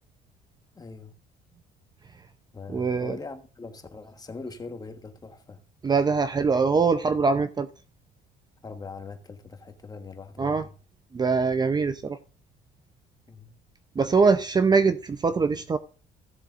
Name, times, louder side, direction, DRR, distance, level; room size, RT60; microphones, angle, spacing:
voice 1, 0.7-1.1 2.5-5.6 8.6-10.7 13.3-13.6, left 4 dB, 20° left, 1.4 m, -41 dB
voice 2, 2.7-3.2 5.8-7.7 10.4-10.7 11.1-12.2 14.0-15.8, right 4 dB, 25° right, 0.6 m, -23 dB
16.5 x 7.4 x 2.5 m
cardioid pair, 110°, 17 cm